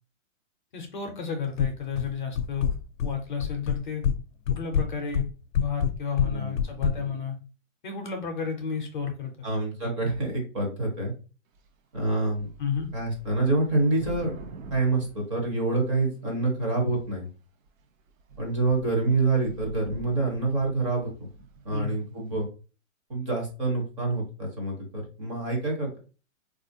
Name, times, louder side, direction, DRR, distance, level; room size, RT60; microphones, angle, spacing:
voice 1, 0.7-2.7 3.0-4.1 4.5-5.3 5.5-7.4 7.8-9.5 12.6-12.9 21.7-22.0, left 6 dB, 40° left, 3 dB, 0.5 m, -32 dB
sound 1, 1.6-2.1 2.4-3.1 3.4-4.2 4.5-7.0, left 7 dB, 90° left, 0.5 m, -25 dB
voice 2, 6.2-7.0 9.4-11.1 11.9-12.5 12.9-14.3 14.7-17.3 18.4-21.3 21.6-22.5 23.1-26.0, right 2 dB, 25° right, 0 dB, 0.7 m, -27 dB
Thunder / Rain, 11.5-11.7 11.9-16.1 16.8-17.2 17.7-17.8 18.1-21.8, right 3 dB, 90° right, 0.7 m, -45 dB
3.7 x 2.4 x 2.6 m, 0.36 s
hypercardioid pair, 170°, 39 cm